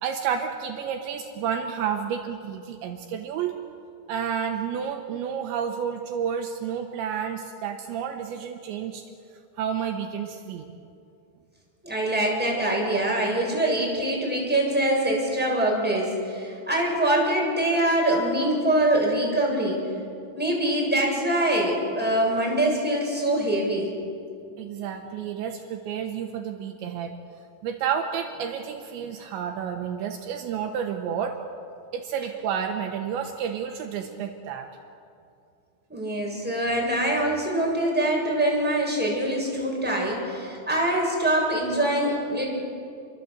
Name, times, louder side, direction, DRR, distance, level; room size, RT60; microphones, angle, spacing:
voice 1, 0.0-3.5 4.1-9.0 9.6-10.7 24.6-27.1 27.6-31.4 31.9-34.7, right 8 dB, 75° right, 4 dB, 3.3 m, -30 dB
voice 2, 11.8-19.8 20.3-23.9 35.9-42.5, right 1 dB, ahead, -2 dB, 6.8 m, -24 dB
29.0 x 23.5 x 8.2 m, 2.5 s
omnidirectional pair, 5.5 m